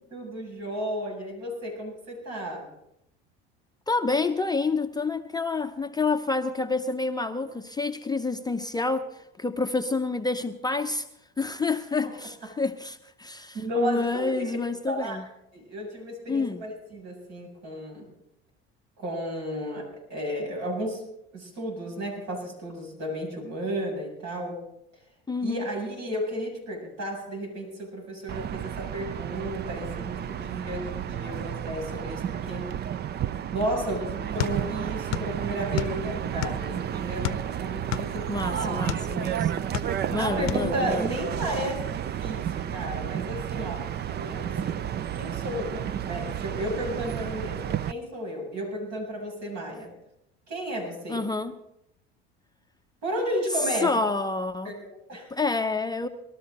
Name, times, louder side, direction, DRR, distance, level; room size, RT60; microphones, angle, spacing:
voice 1, 0.0-2.7 12.0-12.1 13.5-14.5 14.9-15.2 15.5-18.1 19.0-21.0 21.3-24.6 25.4-32.7 33.5-38.7 40.2-44.8 45.1-49.9 50.5-51.2 53.0-53.9 54.6-55.3, equal, 65° right, 7.5 m, -33 dB
voice 2, 3.9-11.1 11.4-15.3 16.3-16.6 25.3-25.6 38.3-39.6 40.1-41.1 51.1-51.6 53.5-54.7 55.3-56.1, left 3 dB, 15° left, 0.7 m, -28 dB
sound 1, 28.3-47.9, right 10 dB, 35° right, 0.5 m, -32 dB
sound 2, 34.4-35.3 35.6-36.7 37.2-39.1 39.5-40.2 40.5-40.7, left 13 dB, 60° left, 0.7 m, -31 dB
20.0 x 13.0 x 4.0 m
hypercardioid pair, 85°, 30 cm